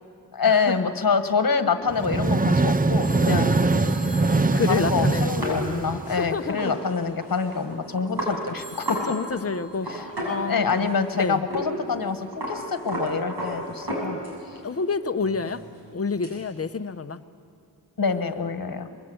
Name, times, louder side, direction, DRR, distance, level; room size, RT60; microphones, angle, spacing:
voice 1, 0.3-3.6 4.6-9.0 9.8-10.1 10.5-14.2 14.5-14.6 18.0-18.9, left 5 dB, 60° left, 9 dB, 1.5 m, -26 dB
sound 1, 1.9-6.5, right 3 dB, 20° right, 0.5 m, -22 dB
Telephone, 3.0-6.3 8.6-10.1, right 1 dB, 55° right, 6.1 m, -45 dB
voice 2, 4.5-5.6 6.1-6.7 9.1-10.9 11.1-11.4 14.6-15.6 15.9-17.2, left 4 dB, 35° left, 10 dB, 0.9 m, -28 dB
sound 2, 5.4-9.1 9.3-9.4 9.7-11.1 11.5-11.7 11.9-14.6 14.9-16.4, equal, 75° right, 7.1 m, -33 dB
23.5 x 22.5 x 7.9 m, 2.7 s
wide cardioid pair, 100°, 39 cm